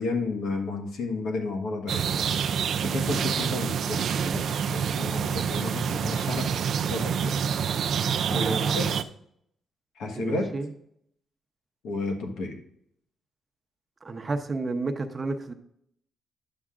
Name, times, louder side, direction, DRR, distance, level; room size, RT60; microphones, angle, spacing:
voice 1, 0.0-2.2 2.6-6.5 6.9-7.4 8.3-9.0 10.0-10.5 11.8-12.6, left 3 dB, 85° left, 1.3 m, -32 dB
sound 1, 1.9-9.0, right 7 dB, 60° right, 0.4 m, -27 dB
voice 2, 8.3-8.7 10.1-10.7 14.0-15.5, right 3 dB, 25° right, 0.8 m, -30 dB
10.0 x 7.1 x 2.5 m
cardioid pair, 110°, 0 cm